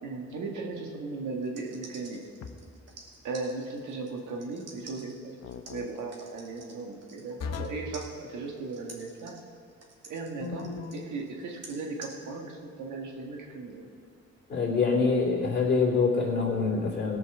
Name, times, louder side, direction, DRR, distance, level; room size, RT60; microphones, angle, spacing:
voice 1, 0.0-2.2 3.2-5.3 5.7-9.4 10.1-13.9, right 3 dB, 75° right, 1 dB, 1.8 m, -37 dB
sound 1, 1.4-7.7 7.9-12.1, right 3 dB, 55° right, 2.4 m, -49 dB
sound 2, 2.4-2.9 5.4-5.9 7.4-7.9 10.4-11.1, left 5 dB, 60° left, 1.0 m, -38 dB
voice 2, 14.5-17.2, left 4 dB, 35° left, -3 dB, 3.1 m, -25 dB
17.5 x 5.8 x 6.3 m, 2.3 s
cardioid pair, 90°, 30 cm